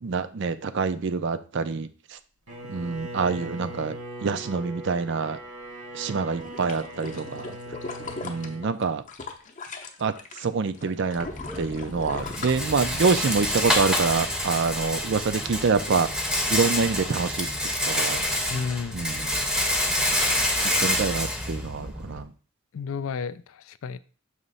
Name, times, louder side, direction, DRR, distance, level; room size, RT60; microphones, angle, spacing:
voice 1, 0.0-2.2 2.7-5.4 5.9-7.6 8.2-9.0 10.0-11.3 11.6-16.1 16.5-17.5 17.9-18.2 18.9-19.4 20.8-22.3, right 4 dB, 55° right, 0.5 m, -26 dB
Bowed string instrument, 2.5-8.7, right 1 dB, 80° right, 1.6 m, -40 dB
sound 1, 6.3-10.4 10.7-13.3 13.7-13.8, left 3 dB, 35° left, 0.7 m, -38 dB
Rattle, 11.2-22.2, left 1 dB, 5° right, 0.7 m, -27 dB
voice 2, 18.5-19.0 22.7-24.0, left 5 dB, 65° left, 0.4 m, -31 dB
6.4 x 3.0 x 5.4 m
head